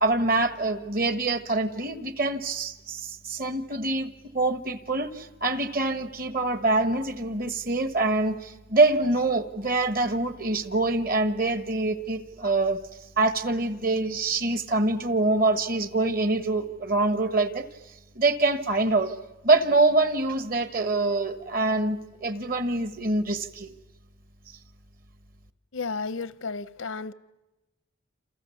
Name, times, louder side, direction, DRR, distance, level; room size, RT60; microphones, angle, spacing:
voice 1, 0.0-12.8 13.2-17.7 18.1-19.1 19.4-23.7, right 2 dB, 45° right, 1.4 m, -25 dB
voice 2, 25.7-27.1, left 4 dB, 90° left, 0.8 m, -33 dB
28.5 x 28.0 x 7.1 m
head